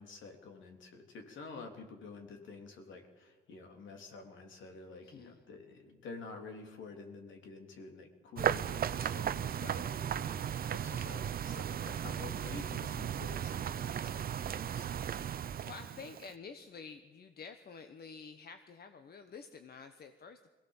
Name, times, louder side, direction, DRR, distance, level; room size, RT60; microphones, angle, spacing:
voice 1, 0.0-15.2, left 4 dB, 70° left, 3 dB, 3.5 m, -49 dB
voice 2, 5.0-5.4 15.4-20.5, left 5 dB, 50° left, 8 dB, 1.3 m, -50 dB
sound 1, 8.4-16.3, right 9 dB, 45° right, 0.7 m, -36 dB
22.5 x 17.0 x 7.4 m, 1.3 s
supercardioid pair, 75°, 21 cm